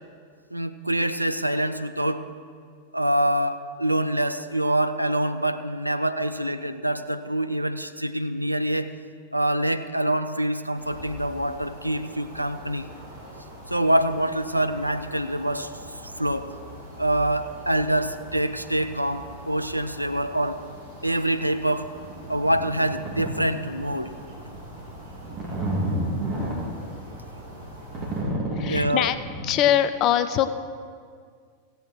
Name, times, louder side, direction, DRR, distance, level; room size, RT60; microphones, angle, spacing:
voice 1, 0.5-2.2 2.9-8.9 9.3-12.9 13.7-15.7 16.2-16.5 17.0-20.6 21.0-21.9 22.3-24.1 28.7-29.1, right 1 dB, 85° right, 10 dB, 0.5 m, -25 dB
sound 1, 10.7-28.2, right 1 dB, 50° right, 3.1 m, -43 dB
sound 2, 22.9-23.3 23.8-24.0 24.5-29.5, right 1 dB, 30° right, 2.9 m, -29 dB
voice 2, 28.6-29.2 29.4-30.5, left 11 dB, 35° left, 11 dB, 0.5 m, -22 dB
16.0 x 8.0 x 4.6 m, 2.1 s
figure-of-eight pair, 90°, 0 cm